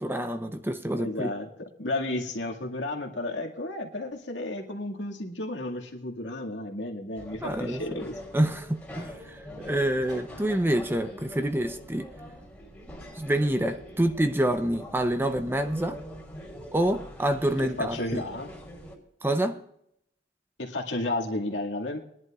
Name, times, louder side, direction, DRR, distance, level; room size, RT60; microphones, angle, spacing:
voice 1, 0.0-1.3 7.4-8.0 8.3-12.1 13.1-16.0 16.7-18.2 19.2-19.6, right 1 dB, 10° right, 0.7 m, -27 dB
voice 2, 0.9-1.5 1.8-8.1 9.9-10.0 17.6-18.5 20.6-22.0, left 2 dB, 80° left, 2.1 m, -32 dB
sound 1, 7.1-19.0, equal, 5° left, 3.0 m, -43 dB
22.0 x 11.0 x 2.4 m
head